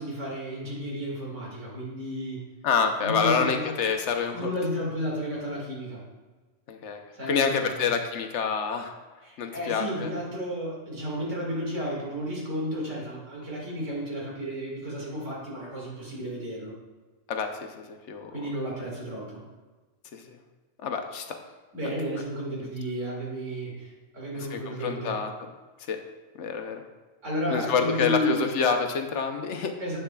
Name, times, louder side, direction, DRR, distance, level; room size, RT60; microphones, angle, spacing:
voice 1, 0.0-2.4 3.0-3.7 4.3-6.0 7.1-7.9 9.2-16.7 18.3-19.4 21.7-25.2 27.2-28.5 29.8-30.0, equal, 70° right, -4 dB, 2.3 m, -32 dB
voice 2, 2.6-4.5 6.7-7.0 7.3-8.9 9.4-10.1 17.3-18.3 20.1-20.4 20.8-21.3 24.3-25.3 25.9-26.0 26.4-26.8 27.5-29.7, left 6 dB, 70° left, 5 dB, 0.9 m, -27 dB
8.0 x 6.9 x 2.3 m, 1.3 s
omnidirectional pair, 1.3 m